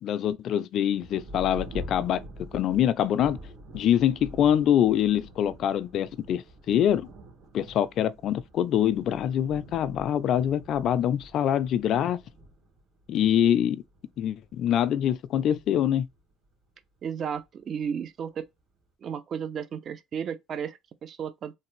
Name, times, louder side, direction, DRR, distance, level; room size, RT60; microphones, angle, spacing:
voice 1, 0.0-3.4 3.7-7.1 7.5-12.2 13.1-13.8 14.2-16.1, left 10 dB, 65° left, 0.3 m, -24 dB
Thunder, 0.9-17.0 17.8-17.9 18.4-18.9, right 1 dB, 70° right, 1.6 m, -46 dB
voice 2, 17.0-18.5 19.0-21.5, right 7 dB, 50° right, 0.5 m, -34 dB
3.2 x 2.5 x 3.1 m
supercardioid pair, 85°, 0 cm